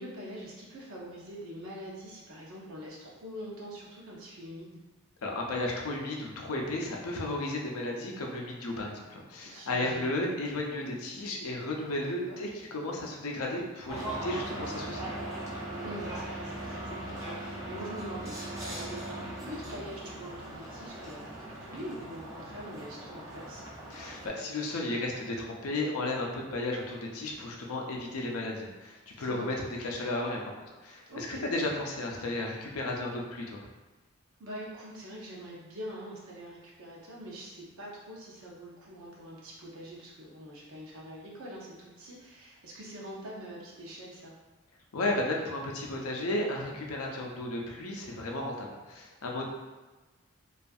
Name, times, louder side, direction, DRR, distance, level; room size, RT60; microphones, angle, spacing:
voice 1, 0.0-4.8 9.4-10.1 12.0-12.4 15.8-23.7 29.2-29.4 31.1-31.5 34.4-44.3, equal, 70° right, -4 dB, 0.6 m, -44 dB
voice 2, 5.2-15.1 23.9-30.4 30.8-33.7 44.9-49.4, left 2 dB, 80° left, 0 dB, 0.5 m, -34 dB
sound 1, 13.9-24.3, right 1 dB, 15° right, 0.3 m, -39 dB
2.6 x 2.4 x 2.3 m, 1.2 s
head